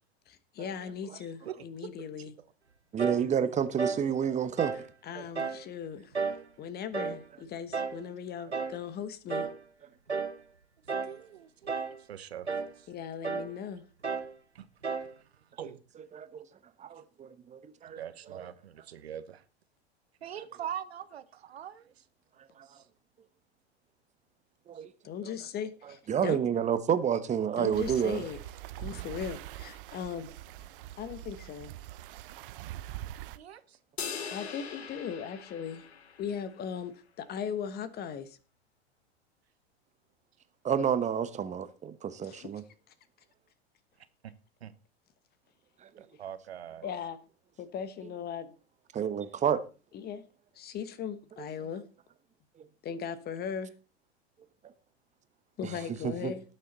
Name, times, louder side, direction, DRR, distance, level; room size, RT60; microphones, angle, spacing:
voice 1, 0.3-2.3 5.1-6.1 6.6-9.5 12.9-13.8 25.0-26.4 27.6-28.4 28.8-30.3 30.6-30.7 31.0-31.7 34.3-35.8 36.2-38.4 42.2-42.5 46.8-47.2 47.6-48.5 49.9-50.2 50.5-51.8 52.8-53.7 55.6-56.4, left 7 dB, 30° left, 1.2 m, -38 dB
voice 2, 1.4-1.9 5.1-5.3 11.0-12.9 14.5-14.7 15.0-15.8 17.8-19.4 20.2-22.0 22.6-22.8 24.7-24.8 33.3-33.8 34.2-34.4 44.2-44.3 44.6-44.7 46.0-46.9, right 10 dB, 70° right, 1.2 m, -43 dB
voice 3, 2.9-4.9 16.0-16.5 16.8-18.5 22.4-22.8 24.7-24.9 25.2-25.3 25.8-28.2 40.6-42.6 45.8-46.1 48.9-49.6 52.6-52.7 54.6-54.7 55.6-56.3, right 8 dB, 20° right, 1.1 m, -30 dB
sound 1, 3.0-3.3 3.8-4.1 4.6-4.9 5.4-5.6 6.1-6.5 6.9-7.2 7.7-8.0 8.5-8.8 9.3-9.6 10.1-10.4 10.9-11.2 11.7-12.0 12.5-12.7 13.2-13.5 14.0-14.3 14.8-15.1, right 5 dB, 90° right, 1.0 m, -33 dB
sound 2, 27.7-33.4, right 14 dB, 55° right, 0.9 m, -43 dB
sound 3, 34.0-36.5, left 7 dB, 70° left, 1.7 m, -41 dB
18.5 x 6.8 x 4.1 m
figure-of-eight pair, 90°, 33 cm